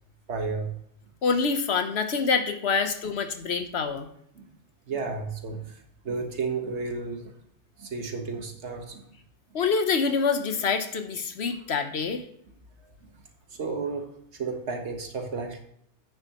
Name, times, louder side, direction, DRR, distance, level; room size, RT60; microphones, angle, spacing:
voice 1, 0.3-0.7 4.4-4.5 4.9-7.3 7.8-9.1 13.0-13.1 13.5-15.6, right 4 dB, 65° right, 4 dB, 1.7 m, -33 dB
voice 2, 1.2-4.1 9.5-12.3, left 5 dB, 60° left, 8 dB, 1.2 m, -26 dB
10.5 x 8.7 x 3.0 m, 0.70 s
omnidirectional pair, 1.3 m